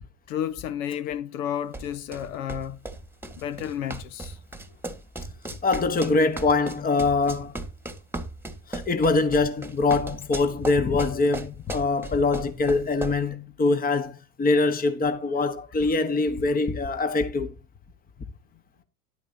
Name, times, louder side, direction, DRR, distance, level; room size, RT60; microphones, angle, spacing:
voice 1, 0.3-2.8 3.3-4.4, left 10 dB, 60° left, 1.4 m, -31 dB
sound 1, 1.7-13.3, right 2 dB, 5° right, 1.8 m, -37 dB
voice 2, 5.6-7.6 8.7-17.5, left 3 dB, 20° left, 1.4 m, -23 dB
12.0 x 11.5 x 2.8 m
figure-of-eight pair, 75°, 44 cm